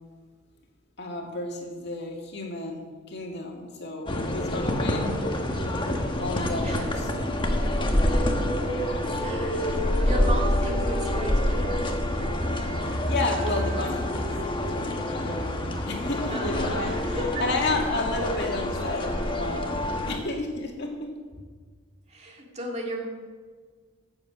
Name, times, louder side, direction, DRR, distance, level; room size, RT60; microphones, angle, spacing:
voice 1, 1.0-5.2 6.2-7.1 12.8-14.3 14.7-15.5 15.9-21.1, left 2 dB, 60° left, 1 dB, 2.1 m, -32 dB
sound 1, 4.1-20.2, left 1 dB, 25° left, 1.2 m, -27 dB
voice 2, 9.2-12.4 16.3-17.4 22.1-23.1, right 1 dB, 35° right, 0 dB, 2.1 m, -35 dB
15.0 x 7.9 x 6.1 m, 1.5 s
head